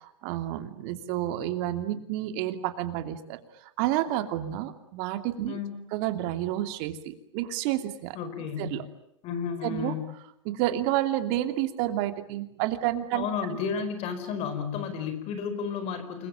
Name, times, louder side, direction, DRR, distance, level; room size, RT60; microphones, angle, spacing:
voice 1, 0.0-3.4 3.8-5.6 5.9-8.2 8.6-8.9 9.6-9.9 10.4-13.3, right 13 dB, 45° right, 8 dB, 2.8 m, -30 dB
voice 2, 5.4-5.8 8.1-8.8 9.2-10.1 13.1-16.3, left 6 dB, 40° left, 10 dB, 4.9 m, -32 dB
28.5 x 22.0 x 9.0 m, 0.76 s
hypercardioid pair, 130°, 17 cm